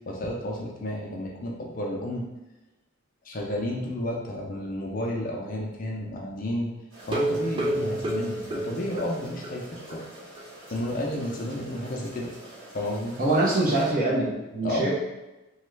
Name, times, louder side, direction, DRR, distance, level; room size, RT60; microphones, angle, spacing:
voice 1, 0.1-2.3 3.2-6.7 7.0-10.1 10.7-12.3 12.7-13.1 14.6-14.9, left 1 dB, 40° left, -2 dB, 0.5 m, -31 dB
sound 1, 6.9-13.9, right 1 dB, 65° right, 1.4 m, -46 dB
sound 2, 7.0-9.6 9.9-10.0 10.4-10.5 10.8-10.9, right 1 dB, 25° right, 0.4 m, -29 dB
voice 2, 13.2-14.9, right 2 dB, 40° right, -5 dB, 0.9 m, -24 dB
3.0 x 2.3 x 3.2 m, 1.0 s
head